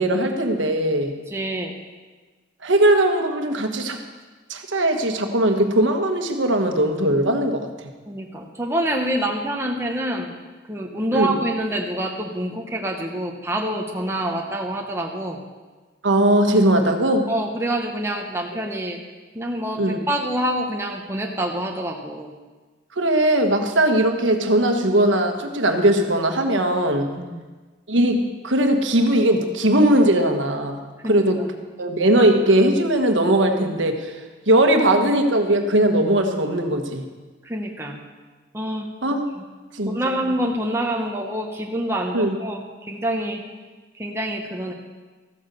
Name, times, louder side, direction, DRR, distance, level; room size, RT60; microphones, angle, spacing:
voice 1, 0.0-1.1 2.6-4.0 4.5-7.7 11.1-11.3 16.0-17.3 19.8-20.0 23.0-27.1 27.9-31.4 31.8-34.1 34.5-37.0 39.0-39.2 39.7-40.1 42.1-42.3, right 1 dB, 85° right, 5 dB, 1.5 m, -19 dB
voice 2, 1.3-1.7 8.1-10.3 10.7-15.4 17.3-19.0 19.3-22.3 27.2-27.4 31.0-31.2 37.4-38.0 38.5-38.9 39.4-39.5 39.9-43.4 44.0-44.7, right 1 dB, 15° right, 0 dB, 1.2 m, -26 dB
14.5 x 9.2 x 6.9 m, 1.3 s
head